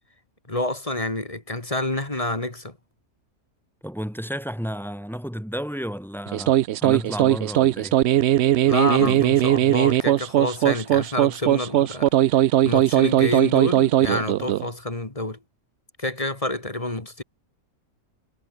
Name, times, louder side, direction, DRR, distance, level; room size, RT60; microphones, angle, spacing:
voice 1, 0.5-2.8 8.7-12.4 12.6-15.4 16.0-17.2, left 1 dB, 20° left, 2.2 m, -28 dB
voice 2, 3.8-8.0, equal, ahead, 4.3 m, -32 dB
sound 1, 6.3-14.7, right 13 dB, 70° right, 0.6 m, -19 dB
omnidirectional pair, 1.6 m